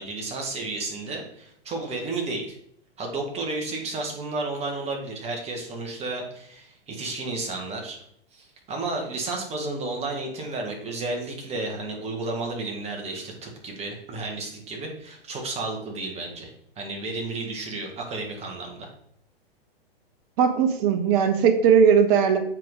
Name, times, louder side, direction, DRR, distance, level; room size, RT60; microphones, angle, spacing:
voice 1, 0.0-2.6 3.0-8.0 8.3-18.9, right 3 dB, 20° right, 1 dB, 1.8 m, -32 dB
voice 2, 20.4-22.4, right 7 dB, 35° right, 6 dB, 1.2 m, -18 dB
7.4 x 4.8 x 4.0 m, 0.70 s
hypercardioid pair, 115°, 31 cm